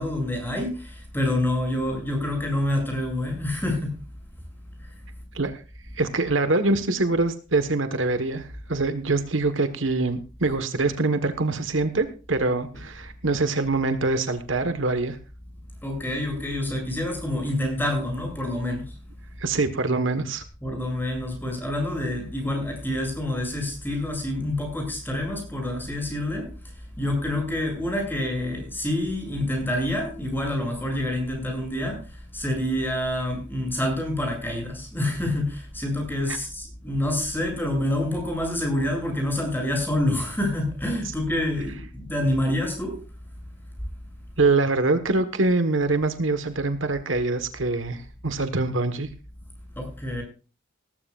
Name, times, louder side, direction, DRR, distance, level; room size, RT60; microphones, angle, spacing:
voice 1, 0.0-3.9 4.8-4.9 15.8-19.0 20.6-43.0 49.7-50.2, left 1 dB, 10° left, 2 dB, 7.9 m, -27 dB
voice 2, 6.0-15.2 19.4-20.4 36.3-36.4 44.4-49.1, right 3 dB, 70° right, 10 dB, 1.4 m, -24 dB
18.5 x 15.0 x 2.5 m, 0.34 s
head